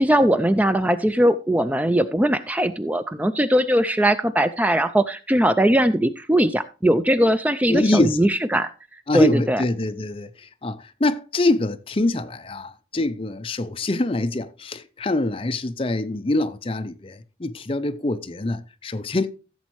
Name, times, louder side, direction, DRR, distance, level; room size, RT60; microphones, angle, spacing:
voice 1, 0.0-8.7 9.1-9.6, right 1 dB, 10° right, 0.4 m, -20 dB
voice 2, 7.7-8.2 9.1-19.3, left 2 dB, 30° left, 0.6 m, -24 dB
15.0 x 7.2 x 3.1 m
head